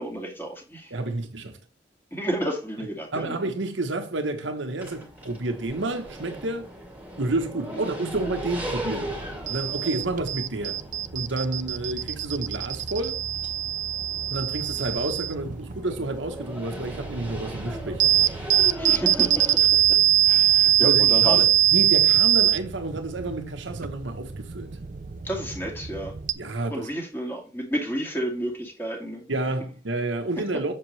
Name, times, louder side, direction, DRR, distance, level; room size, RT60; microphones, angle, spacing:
voice 1, 0.0-0.9 2.1-3.4 7.7-7.8 18.8-20.0 20.3-21.4 25.2-26.1 26.7-29.3, right 1 dB, 10° left, 2.2 m, -31 dB
voice 2, 0.9-1.6 3.1-6.7 7.2-9.2 9.5-10.8 11.1-13.2 14.3-18.1 20.8-24.7 26.3-26.9 29.3-30.7, right 2 dB, 80° right, 1.1 m, -30 dB
sound 1, 4.8-19.6, equal, 10° right, 2.0 m, -39 dB
sound 2, 8.1-26.3, right 10 dB, 45° right, 0.5 m, -24 dB
7.6 x 6.6 x 3.3 m
head